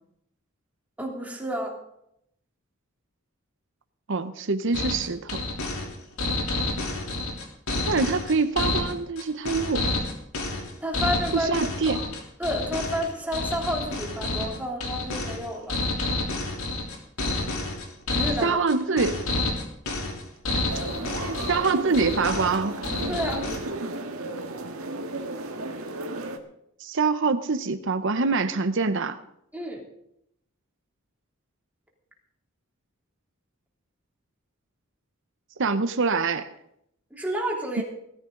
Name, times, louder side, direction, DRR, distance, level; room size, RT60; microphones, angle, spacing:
voice 1, 1.0-1.7 10.8-11.5 11.9-12.0 12.4-15.8 18.1-18.6 23.1-23.4 29.5-29.8 37.1-37.8, equal, 5° right, -1 dB, 3.2 m, -30 dB
voice 2, 4.1-5.4 7.8-9.9 11.3-12.0 18.4-19.2 20.5-20.6 21.5-22.8 26.8-29.2 35.6-36.5, right 4 dB, 60° right, 11 dB, 0.8 m, -25 dB
sound 1, 4.7-23.6, left 2 dB, 85° left, 3.3 m, -29 dB
sound 2, 20.7-26.4, right 2 dB, 80° right, 1.7 m, -34 dB
19.0 x 13.5 x 3.9 m, 0.74 s
head